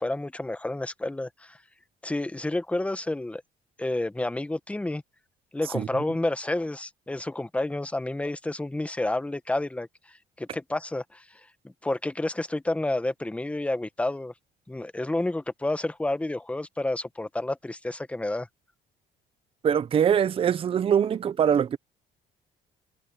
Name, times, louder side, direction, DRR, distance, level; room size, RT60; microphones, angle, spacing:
voice 1, 0.0-1.6 2.0-3.4 3.8-5.0 5.5-9.9 10.4-11.2 11.8-14.3 14.7-18.5, left 2 dB, 5° left, 1.0 m, -30 dB
voice 2, 19.6-21.8, right 8 dB, 35° right, 0.5 m, -23 dB
cardioid pair, 110°, 17 cm